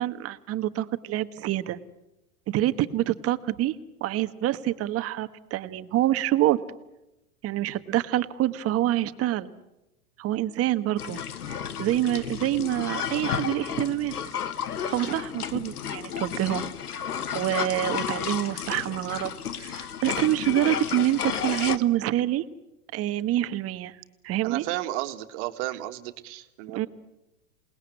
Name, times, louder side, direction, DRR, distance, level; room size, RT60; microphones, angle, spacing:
voice 1, 0.0-1.8 2.5-3.7 4.0-6.6 7.4-9.5 10.2-11.2 11.5-14.1 14.9-16.6 17.3-19.3 19.6-22.4 22.9-23.9 24.2-24.6 26.7-26.9, right 14 dB, 30° right, 11 dB, 1.4 m, -26 dB
sound 1, 11.0-21.8, left 8 dB, 80° left, 1.4 m, -32 dB
voice 2, 24.4-26.9, right 15 dB, 50° right, 7 dB, 2.0 m, -33 dB
28.0 x 19.5 x 9.5 m, 0.96 s
hypercardioid pair, 105°, 44 cm